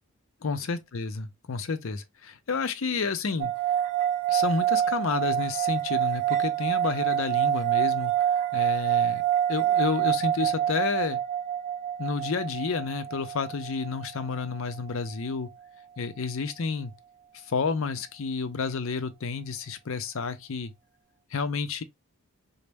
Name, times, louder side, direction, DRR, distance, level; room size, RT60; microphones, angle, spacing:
voice 1, 0.4-3.5 4.3-8.1 8.5-9.2 9.5-11.2 12.0-15.5 16.0-16.9 17.3-20.7 21.3-21.8, left 5 dB, 70° left, 0.6 m, -30 dB
sound 1, 3.4-14.7, right 11 dB, 35° right, 0.4 m, -27 dB
4.0 x 2.1 x 3.4 m
head